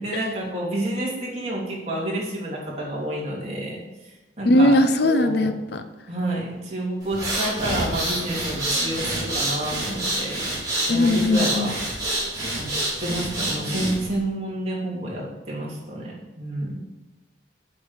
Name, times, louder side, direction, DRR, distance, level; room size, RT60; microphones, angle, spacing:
voice 1, 0.0-3.8 4.4-5.5 6.1-10.4 10.9-11.7 12.5-12.7 13.0-16.8, right 1 dB, 35° right, -4 dB, 3.1 m, -29 dB
voice 2, 4.4-5.8 10.9-11.7, left 1 dB, 60° left, 9 dB, 0.8 m, -19 dB
sound 1, 7.0-14.2, right 1 dB, 20° right, 3.8 m, -27 dB
8.5 x 6.2 x 8.2 m, 1.1 s
head